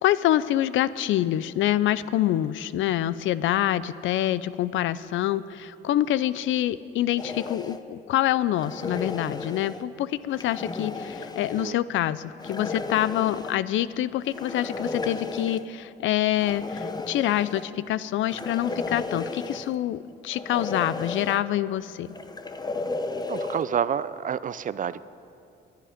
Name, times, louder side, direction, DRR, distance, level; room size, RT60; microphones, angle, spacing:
voice 1, 0.0-22.1, left 13 dB, 75° left, 17 dB, 0.5 m, -26 dB
sound 1, 7.2-7.8 8.6-9.8 10.3-11.7 12.4-13.6 14.3-15.6 16.4-17.7 18.3-19.8 20.3-21.4 22.1-23.6, left 3 dB, 20° left, 0.8 m, -34 dB
voice 2, 23.3-25.0, right 8 dB, 40° right, 16 dB, 0.4 m, -28 dB
21.5 x 10.5 x 5.1 m, 2.7 s
cardioid pair, 90°, 20 cm